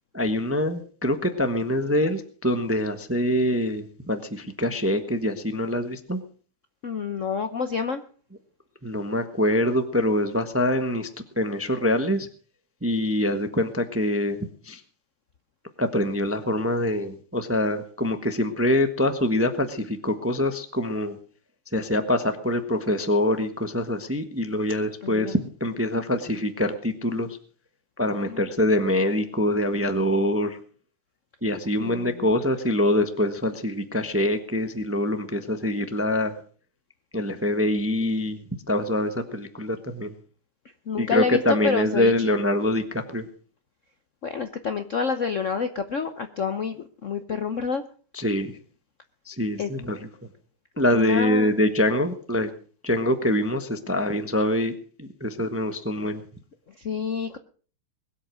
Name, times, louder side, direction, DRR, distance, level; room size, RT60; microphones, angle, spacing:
voice 1, 0.1-6.2 8.8-11.1 11.4-12.3 12.8-14.8 15.8-21.2 21.7-27.4 28.0-30.6 31.4-36.3 37.1-40.1 41.0-43.3 48.1-48.6 49.3-50.0 50.8-52.5 52.8-54.7 55.0-56.2, left 1 dB, 10° right, 8 dB, 0.7 m, -24 dB
voice 2, 6.8-8.0 25.0-25.3 28.2-28.4 31.8-32.3 40.9-42.4 44.2-47.8 49.6-49.7 50.9-51.5 56.8-57.4, left 6 dB, 55° left, 9 dB, 0.9 m, -28 dB
21.0 x 8.2 x 6.3 m, 0.42 s
omnidirectional pair, 2.4 m